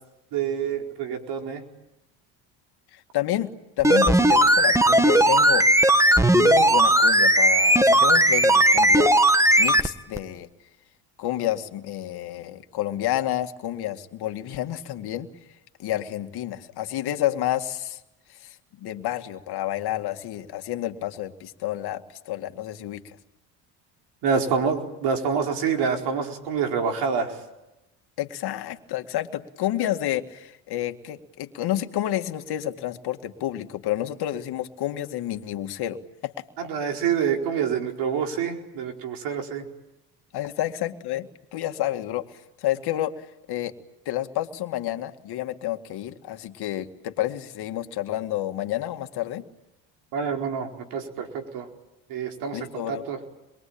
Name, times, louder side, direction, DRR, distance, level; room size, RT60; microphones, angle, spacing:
voice 1, 0.3-1.6 24.2-27.3 36.6-39.7 50.1-51.7 52.1-53.2, right 6 dB, 70° right, 3 dB, 4.6 m, -27 dB
voice 2, 2.9-5.7 6.3-9.2 9.6-10.5 11.2-15.3 15.8-18.0 18.3-23.2 28.2-36.4 40.3-43.7 44.1-49.4 52.5-53.0, left 13 dB, 60° left, 7 dB, 2.2 m, -30 dB
sound 1, 3.8-9.9 10.2-10.3, right 1 dB, 5° right, 1.7 m, -17 dB
27.0 x 22.5 x 8.8 m, 0.98 s
supercardioid pair, 85°, 43 cm